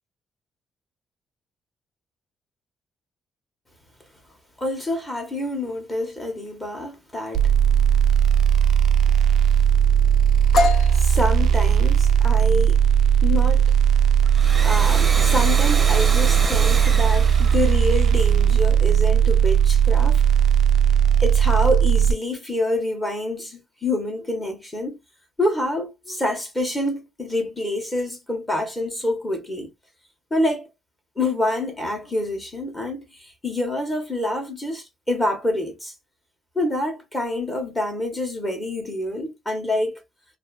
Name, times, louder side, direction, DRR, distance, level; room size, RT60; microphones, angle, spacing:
voice 1, 4.6-7.5 10.9-12.8 13.2-13.7 14.6-20.2 21.2-25.0 25.4-29.7 30.3-30.7 31.2-35.9 36.5-40.0, left 1 dB, 15° left, 1.1 m, -27 dB
sound 1, 7.3-22.1, right 8 dB, 65° right, 0.3 m, -17 dB
sound 2, 10.5-18.2, left 4 dB, 60° left, 0.7 m, -30 dB
Domestic sounds home sounds, 14.2-18.7, right 3 dB, 20° right, 0.7 m, -30 dB
2.6 x 2.6 x 2.3 m
cardioid pair, 160°, 0 cm